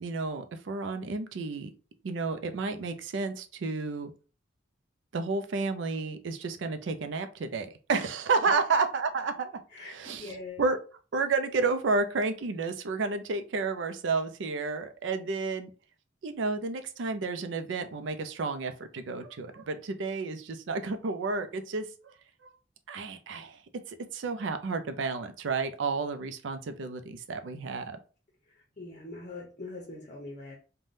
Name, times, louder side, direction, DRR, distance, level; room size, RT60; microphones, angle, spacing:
voice 1, 0.0-1.7 2.0-4.1 5.1-9.5 9.9-10.3 10.6-10.8 11.1-15.7 16.2-22.1 22.4-22.5 22.9-23.6 23.9-28.0, right 4 dB, 90° right, 0.4 m, -31 dB
voice 2, 9.7-10.6 28.5-30.6, left 3 dB, 40° left, 0.6 m, -43 dB
3.3 x 2.2 x 2.6 m
head